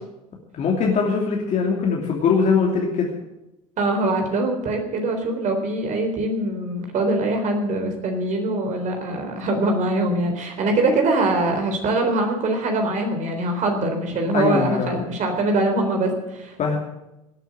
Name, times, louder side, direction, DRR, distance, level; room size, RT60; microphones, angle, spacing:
voice 1, 0.5-3.1 14.3-15.0 16.6-16.8, left 5 dB, 40° left, -1 dB, 2.9 m, -21 dB
voice 2, 3.8-16.8, right 2 dB, 45° right, 4 dB, 3.9 m, -23 dB
18.5 x 9.2 x 7.7 m, 0.93 s
hypercardioid pair, 70°, 18 cm